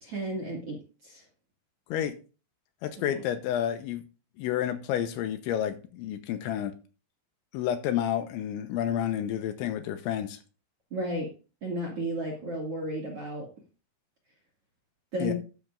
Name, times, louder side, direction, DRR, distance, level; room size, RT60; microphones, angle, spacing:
voice 1, 0.0-1.2 3.1-3.2 10.9-11.3 11.6-13.5 15.1-15.3, right 1 dB, 45° right, 2.0 m, -33 dB
voice 2, 2.8-4.0 4.4-6.7 7.5-10.4 15.2-15.3, left 10 dB, 80° left, 3.1 m, -30 dB
13.0 x 9.2 x 2.5 m
omnidirectional pair, 5.7 m